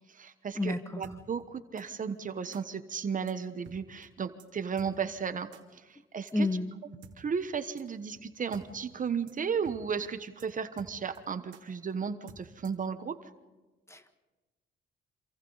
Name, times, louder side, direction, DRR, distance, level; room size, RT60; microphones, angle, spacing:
voice 1, 0.1-6.5 7.2-13.2, right 6 dB, 40° right, 10 dB, 1.2 m, -34 dB
sound 1, 1.0-1.2 1.8-1.9 2.5-2.6 3.3-3.4 3.6-3.8 4.0-4.1 4.4-4.5 4.8-4.9 5.5-5.6 6.3-6.4 7.0-7.2 7.8-7.9 8.2-8.3 8.5-8.7 8.9-9.0 9.3-9.4 9.6-9.8 10.0-10.1 10.4-10.5 10.8-11.2 11.5-11.6 12.3-12.9, right 7 dB, 75° right, 2.7 m, -51 dB
voice 2, 6.3-6.7 13.9-14.1, left 2 dB, 15° left, 9 dB, 1.6 m, -29 dB
27.5 x 27.0 x 4.1 m, 1.2 s
cardioid pair, 90°, 20 cm